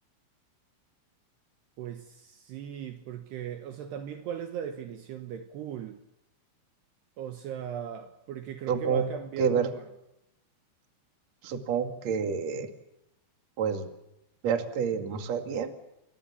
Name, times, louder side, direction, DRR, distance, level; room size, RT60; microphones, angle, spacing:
voice 1, 1.8-6.0 7.2-9.7, right 9 dB, 70° right, 7 dB, 3.0 m, -38 dB
voice 2, 8.7-9.0 9.4-9.7 11.4-12.7 13.6-13.9 14.4-15.7, right 6 dB, 45° right, 7 dB, 2.6 m, -28 dB
29.0 x 22.5 x 7.2 m, 0.85 s
omnidirectional pair, 5.6 m